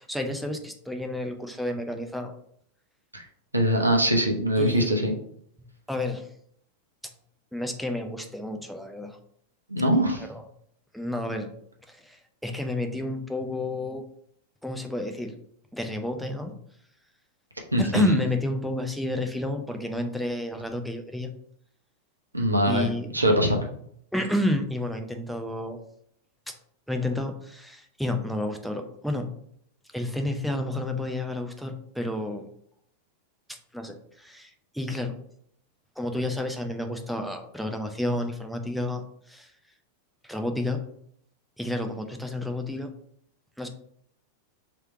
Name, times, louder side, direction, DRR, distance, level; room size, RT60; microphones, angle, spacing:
voice 1, 0.0-2.4 4.6-4.9 5.9-6.3 7.5-9.2 10.3-10.4 10.9-11.5 11.9-14.0 14.6-15.3 15.7-16.5 17.8-21.3 22.7-23.1 24.1-25.8 26.5-26.6 26.9-29.3 29.9-32.5 33.5-35.1 36.0-39.5 40.2-40.8 41.6-42.9 43.6-43.7, left 1 dB, ahead, 4 dB, 0.6 m, -30 dB
voice 2, 3.5-5.1 9.7-10.2 17.7-18.2 22.3-23.7, equal, 85° right, 2 dB, 0.8 m, -23 dB
3.3 x 3.1 x 4.5 m, 0.66 s
figure-of-eight pair, 90°, 0 cm